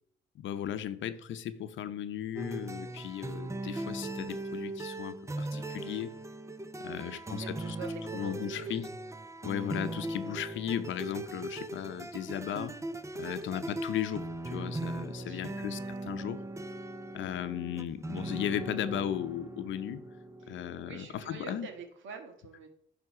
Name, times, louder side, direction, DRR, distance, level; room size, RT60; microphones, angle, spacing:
voice 1, 0.3-6.1 6.8-7.8 8.1-8.9 9.4-12.8 13.2-16.4 17.1-20.0 20.5-21.7, left 10 dB, 75° left, 0.7 m, -36 dB
sound 1, 2.4-21.7, right 2 dB, 15° right, 0.6 m, -39 dB
voice 2, 6.9-8.9 13.2-13.5 15.2-15.6 20.4-20.6 20.9-22.7, right 5 dB, 75° right, 1.8 m, -46 dB
10.5 x 3.5 x 5.8 m
cardioid pair, 90°, 20 cm